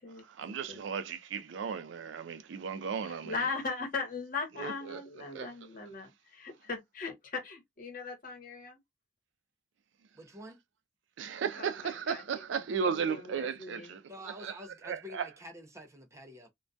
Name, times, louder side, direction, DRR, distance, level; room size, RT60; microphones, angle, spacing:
voice 1, 0.2-3.5 4.6-5.0 5.3-5.5 11.2-14.0 14.4-14.5 14.8-15.2, right 6 dB, 80° right, 0.4 m, -35 dB
voice 2, 3.0-8.8 11.6-12.2 12.8-14.0, left 4 dB, 50° left, 1.0 m, -39 dB
voice 3, 10.1-10.6 14.1-16.5, equal, 15° right, 0.4 m, -48 dB
2.2 x 2.2 x 2.5 m
head